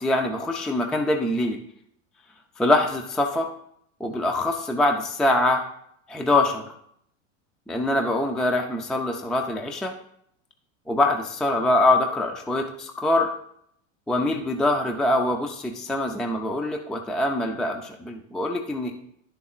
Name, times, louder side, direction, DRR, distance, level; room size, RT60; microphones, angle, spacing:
voice 1, 0.0-1.6 2.6-3.5 4.0-5.6 6.1-6.6 7.7-9.9 10.9-13.3 14.1-18.9, left 2 dB, ahead, 3 dB, 0.3 m, -24 dB
11.0 x 6.7 x 2.4 m, 0.71 s
supercardioid pair, 130°, 39 cm